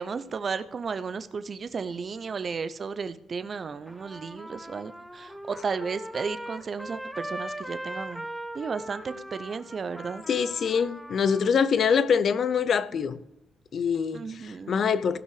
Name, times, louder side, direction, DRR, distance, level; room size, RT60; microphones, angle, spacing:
voice 1, 0.0-8.3 8.5-10.2 14.1-14.8, right 5 dB, 40° right, 0.6 m, -34 dB
Trumpet, 3.9-11.5, right 1 dB, ahead, 0.8 m, -40 dB
voice 2, 10.3-13.2 13.7-15.2, left 6 dB, 55° left, 0.6 m, -24 dB
16.0 x 5.6 x 4.9 m
cardioid pair, 90°, 0 cm